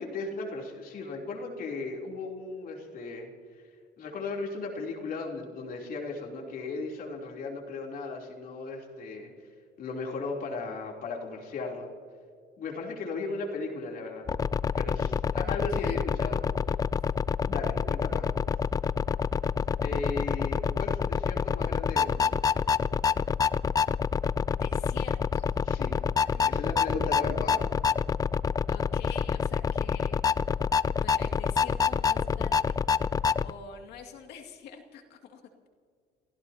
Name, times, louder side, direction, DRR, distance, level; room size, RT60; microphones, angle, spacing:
voice 1, 0.0-3.3 4.0-9.3 9.8-11.9 12.6-14.2 14.8-16.4 17.4-18.3 19.8-22.4 25.6-27.6, left 3 dB, 60° left, 0 dB, 3.5 m, -36 dB
sound 1, 14.3-33.5, left 6 dB, 20° left, 0.3 m, -27 dB
voice 2, 15.4-16.0 24.5-25.5 26.3-26.8 28.7-30.2 31.0-32.8 33.0-35.7, left 6 dB, 80° left, 3 dB, 2.5 m, -47 dB
29.0 x 16.0 x 2.9 m, 2.1 s
cardioid pair, 110°, 17 cm